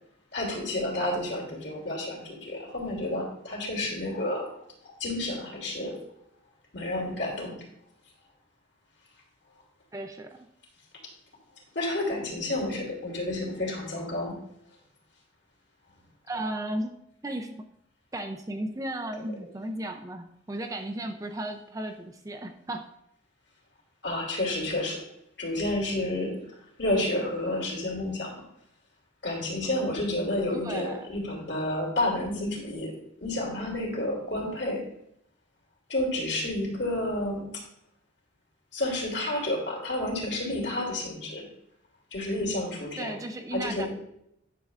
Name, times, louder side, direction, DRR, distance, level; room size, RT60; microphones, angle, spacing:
voice 1, 0.3-4.5 4.8-6.0 6.7-7.5 11.7-14.3 24.0-25.0 25.4-26.3 26.8-28.3 29.2-32.9 33.2-34.8 35.9-37.5 38.7-41.4 42.1-43.2 43.5-43.9, left 1 dB, 60° left, -2 dB, 2.7 m, -30 dB
voice 2, 9.9-10.5 16.3-17.0 17.2-17.6 18.1-22.9 30.6-31.1 43.0-43.9, right 1 dB, 15° right, 5 dB, 0.4 m, -35 dB
10.5 x 6.7 x 2.4 m, 0.76 s
head